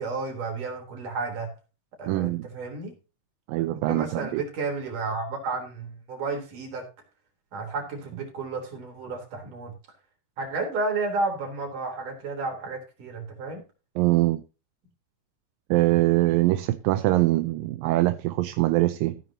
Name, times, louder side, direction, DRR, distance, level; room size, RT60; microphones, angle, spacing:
voice 1, 0.0-1.5 2.0-3.0 3.6-6.9 7.5-9.7 10.4-13.6, right 3 dB, 60° right, 5.2 m, -32 dB
voice 2, 2.1-2.5 3.5-4.4 14.0-14.4 15.7-19.2, right 18 dB, 80° right, 2.3 m, -23 dB
16.0 x 9.4 x 2.9 m
omnidirectional pair, 4.2 m